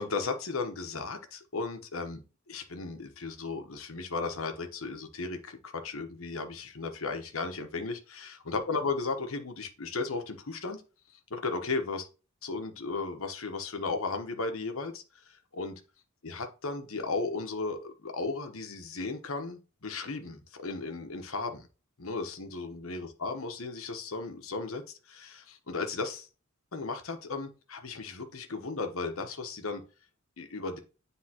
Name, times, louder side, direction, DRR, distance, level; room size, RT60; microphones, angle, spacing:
voice 1, 0.0-2.2 2.5-10.8 11.3-12.1 12.4-15.7 16.2-21.7 22.0-26.3 26.7-29.8 30.4-30.8, left 3 dB, 85° left, 1.1 m, -35 dB
9.8 x 3.6 x 2.9 m
head